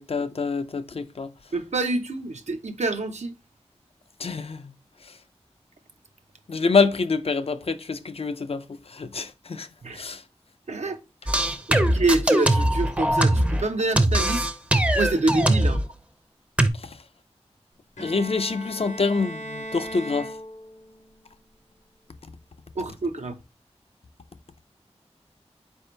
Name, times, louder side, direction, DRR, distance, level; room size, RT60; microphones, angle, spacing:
voice 1, 0.0-1.3 4.2-4.7 5.0-5.2 6.5-10.2 16.7-17.0 18.0-20.4, left 4 dB, 60° left, 0.4 m, -26 dB
voice 2, 1.5-3.3 9.8-10.0 10.7-11.0 11.7-14.5 14.9-15.8 22.8-23.4, right 2 dB, 85° right, 0.6 m, -26 dB
sound 1, 11.3-13.6 14.0-15.9 16.6-16.7, right 1 dB, 10° right, 0.5 m, -21 dB
Bowed string instrument, 18.0-21.1, equal, 75° left, 0.8 m, -38 dB
4.3 x 2.7 x 3.2 m
wide cardioid pair, 60°, 12 cm